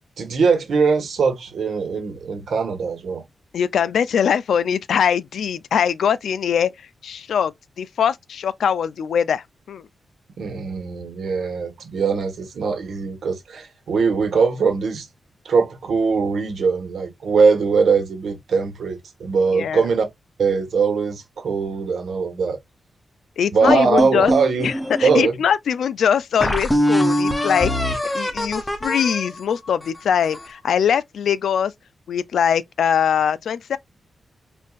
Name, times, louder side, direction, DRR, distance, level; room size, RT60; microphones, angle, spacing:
voice 1, 0.2-3.2 10.4-15.1 15.4-20.0 20.4-22.6 23.5-24.7 25.0-25.4, right 5 dB, 70° right, 1.3 m, -21 dB
voice 2, 3.5-6.7 7.0-9.8 19.5-19.8 23.4-24.3 24.6-24.7 25.0-31.7 32.1-33.8, left 8 dB, 85° left, 0.3 m, -22 dB
sound 1, 23.7-25.2 25.8-25.9 26.4-30.6, equal, 10° left, 0.7 m, -23 dB
4.4 x 2.5 x 2.4 m
wide cardioid pair, 145°, 0 cm